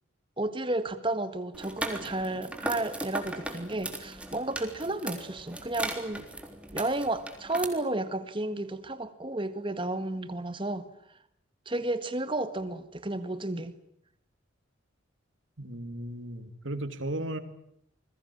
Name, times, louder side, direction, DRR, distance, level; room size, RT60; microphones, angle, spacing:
voice 1, 0.4-6.2 6.7-10.9 11.6-13.7, right 2 dB, 25° right, 11 dB, 1.7 m, -32 dB
sound 1, 1.5-7.6, right 1 dB, 5° right, 3.7 m, -38 dB
voice 2, 15.6-17.4, right 1 dB, 70° right, 10 dB, 3.1 m, -35 dB
28.5 x 21.5 x 8.7 m, 0.70 s
head